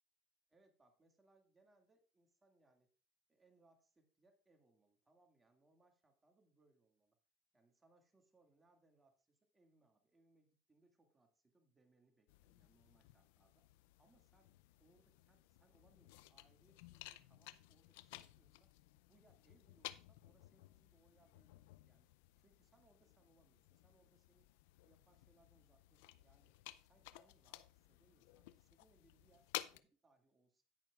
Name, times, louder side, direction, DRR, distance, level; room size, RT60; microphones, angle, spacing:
voice 1, 0.5-2.9 3.3-7.2 7.5-14.5 14.8-18.7 19.1-24.5 24.8-30.6, right 2 dB, 20° right, 3 dB, 2.1 m, -74 dB
sound 1, 12.3-29.8, left 17 dB, 75° left, 0.4 m, -55 dB
17.0 x 6.1 x 2.4 m, 0.37 s
supercardioid pair, 100°, 0 cm